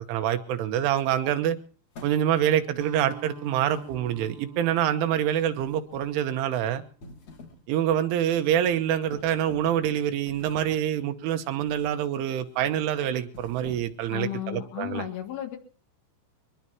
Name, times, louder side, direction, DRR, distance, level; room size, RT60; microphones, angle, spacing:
voice 1, 0.0-1.6 2.0-6.8 7.7-15.1, right 10 dB, 85° right, 8 dB, 3.6 m, -26 dB
sound 1, 1.9-2.6 3.7-4.6 5.6-6.2 6.9-7.7 8.0-8.3 9.1-9.9 10.3-10.8 11.6-12.0 12.4-12.7 13.2-14.1, left 2 dB, 40° left, 2.8 m, -48 dB
Acoustic guitar, 2.8-7.3, right 7 dB, 65° right, 2.6 m, -47 dB
voice 2, 14.1-15.6, left 12 dB, 80° left, 3 dB, 4.4 m, -33 dB
22.5 x 21.0 x 3.0 m, 0.40 s
omnidirectional pair, 5.6 m